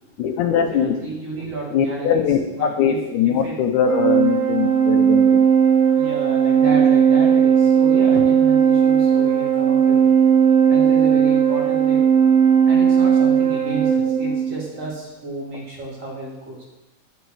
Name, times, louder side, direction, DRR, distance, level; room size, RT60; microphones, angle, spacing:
voice 1, 0.2-1.0 1.7-5.4, left 8 dB, 75° left, 6 dB, 2.1 m, -21 dB
voice 2, 0.7-2.2 2.5-3.6 4.4-4.5 6.0-10.0 10.7-12.0 12.7-16.6, right 3 dB, 50° right, -4 dB, 3.4 m, -32 dB
Organ, 3.8-14.6, right 7 dB, 80° right, 1.3 m, -16 dB
12.5 x 6.2 x 4.7 m, 0.97 s
omnidirectional pair, 3.7 m